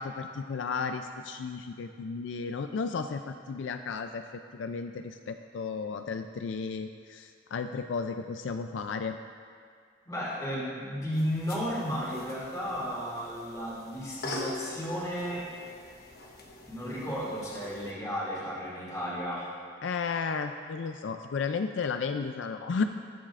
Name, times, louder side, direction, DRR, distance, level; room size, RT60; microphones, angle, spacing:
voice 1, 0.0-9.2 19.8-22.8, left 5 dB, 80° left, 7 dB, 0.4 m, -33 dB
voice 2, 10.1-15.4 16.6-19.6, equal, 20° left, -9 dB, 2.5 m, -34 dB
sound 1, 11.1-17.9, left 2 dB, 55° left, 1.1 m, -43 dB
19.5 x 7.4 x 2.5 m, 2.2 s
head